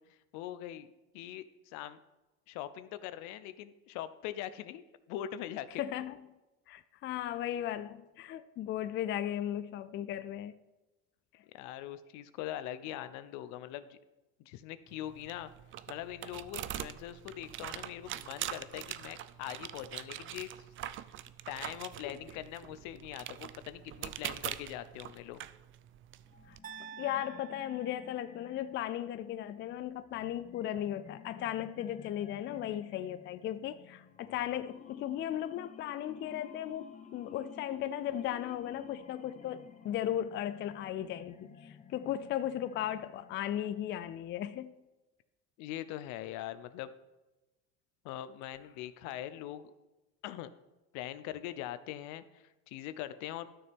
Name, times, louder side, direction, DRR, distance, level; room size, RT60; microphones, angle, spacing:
voice 1, 0.1-0.9 1.1-2.0 2.5-4.8 5.1-5.8 11.5-14.0 14.4-15.5 15.9-20.5 21.5-25.4 45.6-46.9 48.0-49.7 50.2-50.5 50.9-53.5, left 12 dB, 75° left, 0.7 m, -42 dB
voice 2, 5.8-6.2 6.7-10.6 11.3-11.4 22.0-22.2 26.5-26.6 27.0-44.7, left 11 dB, 40° left, 0.4 m, -36 dB
sound 1, 14.9-26.6, right 12 dB, 45° right, 0.4 m, -43 dB
sound 2, 26.3-44.2, left 6 dB, 25° left, 0.8 m, -53 dB
sound 3, 26.6-28.8, right 8 dB, 30° right, 1.1 m, -50 dB
12.0 x 6.7 x 3.5 m
cardioid pair, 125°, 29 cm